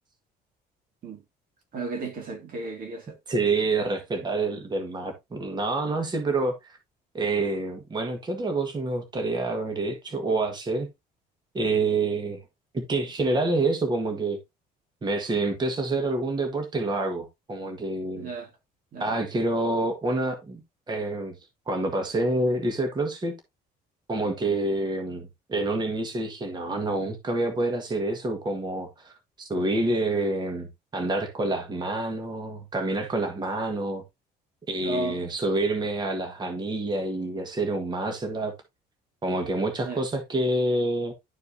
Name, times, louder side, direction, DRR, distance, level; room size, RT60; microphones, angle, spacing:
voice 1, 1.7-3.2 5.9-6.0 18.2-18.5 18.9-19.2 34.8-35.2 39.8-40.0, right 3 dB, 55° right, 2.4 m, -34 dB
voice 2, 3.3-6.8 7.1-10.9 11.5-12.4 12.7-14.4 15.0-18.3 19.0-20.6 20.9-21.3 21.7-23.3 24.1-34.0 34.7-38.5 39.2-41.1, right 2 dB, 25° right, 1.5 m, -27 dB
11.5 x 4.5 x 2.7 m
cardioid pair, 110°, 17 cm